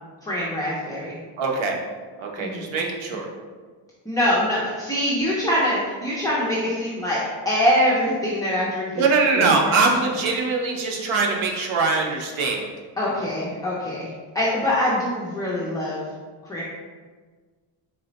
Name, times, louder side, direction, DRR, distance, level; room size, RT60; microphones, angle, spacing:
voice 1, 0.2-1.2 2.4-2.7 4.1-7.2 7.5-9.0 9.3-9.7 13.0-16.0 16.4-16.6, left 1 dB, 10° left, -8 dB, 0.4 m, -24 dB
voice 2, 1.4-1.8 2.2-3.3 9.0-12.6, right 4 dB, 85° right, 1 dB, 0.8 m, -22 dB
4.1 x 2.1 x 3.8 m, 1.5 s
cardioid pair, 155°, 47 cm